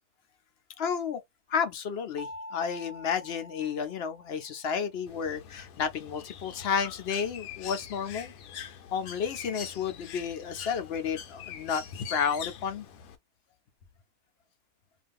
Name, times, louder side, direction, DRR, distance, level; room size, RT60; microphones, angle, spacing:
voice 1, 0.8-1.2 1.5-8.3 8.9-12.8, left 7 dB, 60° left, 0.7 m, -31 dB
Mallet percussion, 2.2-4.7, left 1 dB, 50° right, 0.6 m, -45 dB
Bird, 5.1-13.2, left 8 dB, 75° left, 1.0 m, -44 dB
2.6 x 2.5 x 3.4 m
omnidirectional pair, 1.6 m